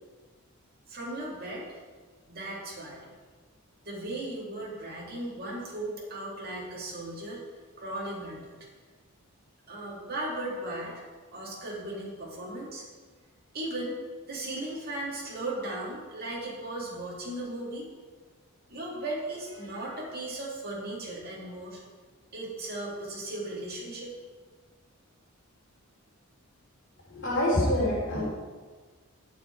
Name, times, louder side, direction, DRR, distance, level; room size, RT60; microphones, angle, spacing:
voice 1, 0.9-1.8 2.3-3.1 3.8-7.4 7.8-8.6 9.7-11.0 11.3-12.8 13.5-14.0 14.3-17.9 18.7-21.8 22.3-24.1, right 1 dB, 45° right, -5 dB, 2.4 m, -36 dB
voice 2, 27.1-28.2, left 1 dB, 50° left, -5 dB, 3.5 m, -26 dB
11.5 x 7.4 x 4.6 m, 1.4 s
head